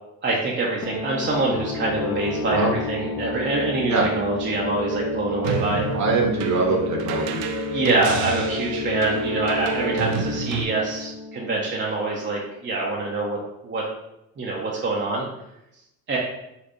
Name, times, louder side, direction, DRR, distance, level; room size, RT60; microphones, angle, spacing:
voice 1, 0.2-5.9 7.7-13.4 13.6-13.8 14.4-15.2 16.1-16.2, right 2 dB, 30° right, -4 dB, 0.8 m, -25 dB
sound 1, 0.8-12.3, left 5 dB, 40° left, 0.6 m, -32 dB
sound 2, 4.5-10.1, right 1 dB, 70° right, 1.4 m, -31 dB
sound 3, 5.4-10.6, right 7 dB, 85° right, 0.5 m, -32 dB
voice 2, 5.9-7.4, right 4 dB, 45° right, 0 dB, 1.1 m, -22 dB
4.2 x 2.4 x 3.1 m, 0.85 s
supercardioid pair, 65°, 39 cm